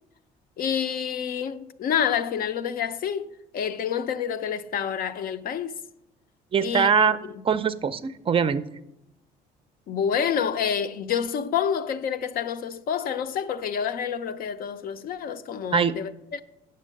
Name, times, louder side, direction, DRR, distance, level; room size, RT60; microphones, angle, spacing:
voice 1, 0.6-5.8 6.6-7.1 9.9-16.4, left 8 dB, 60° left, 0.6 m, -28 dB
voice 2, 6.5-7.2 7.5-8.6 15.7-16.0, right 6 dB, 30° right, 0.4 m, -22 dB
8.4 x 6.5 x 6.4 m
cardioid pair, 110°, 17 cm